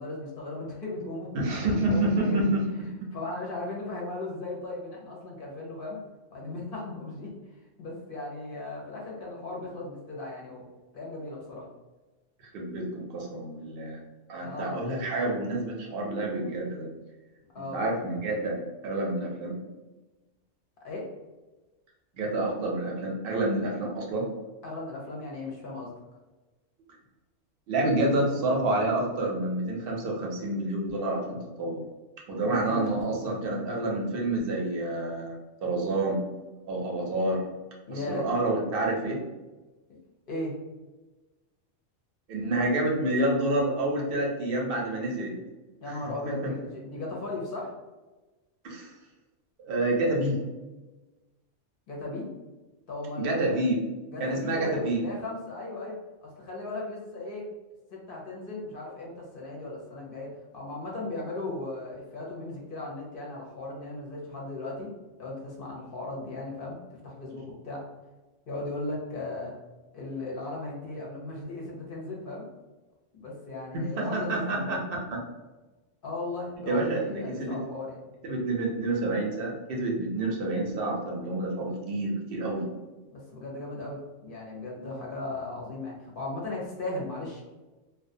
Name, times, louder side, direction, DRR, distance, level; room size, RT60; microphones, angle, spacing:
voice 1, 0.0-1.3 1.6-2.5 3.1-6.0 6.3-7.3 7.8-10.6 10.9-11.7 14.4-14.9 17.5-17.8 20.8-21.1 24.6-25.9 32.4-33.7 37.9-38.3 40.3-40.5 45.8-47.7 51.9-52.3 52.9-53.6 54.1-57.5 57.9-64.9 65.2-67.8 68.5-69.5 69.9-72.5 73.2-74.7 76.0-78.0 83.1-87.4, left 2 dB, 55° left, -2 dB, 0.7 m, -37 dB
voice 2, 1.3-3.1 12.4-14.0 14.3-16.9 17.6-19.6 22.1-24.3 27.7-31.8 32.3-36.2 36.7-37.4 37.9-39.2 42.3-45.4 46.0-46.5 48.6-48.9 49.6-50.4 53.2-53.8 54.2-55.0 73.7-75.2 76.7-77.6 78.2-82.7, right 2 dB, 60° right, -1 dB, 0.7 m, -28 dB
2.3 x 2.1 x 2.6 m, 1.2 s
omnidirectional pair, 1.3 m